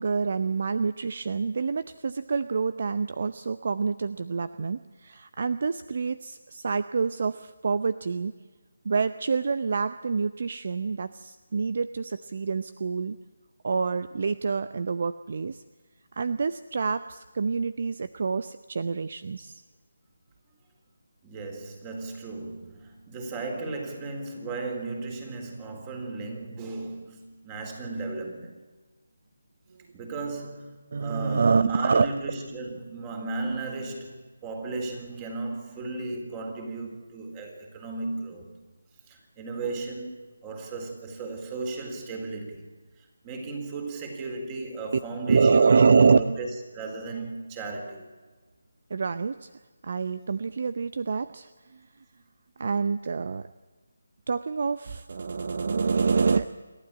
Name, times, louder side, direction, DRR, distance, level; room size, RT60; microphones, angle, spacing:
voice 1, 0.0-8.3 8.8-13.2 13.6-15.6 16.1-19.6 30.9-32.1 45.3-46.2 48.9-49.5 49.8-51.9 52.6-53.5 54.3-56.5, right 5 dB, 50° right, 13 dB, 0.6 m, -26 dB
voice 2, 21.2-28.5 29.9-30.7 31.0-38.5 39.1-42.7 43.0-46.5 46.7-48.0, right 3 dB, 20° right, 3 dB, 4.1 m, -35 dB
28.0 x 12.5 x 8.8 m, 1.3 s
figure-of-eight pair, 160°, 0 cm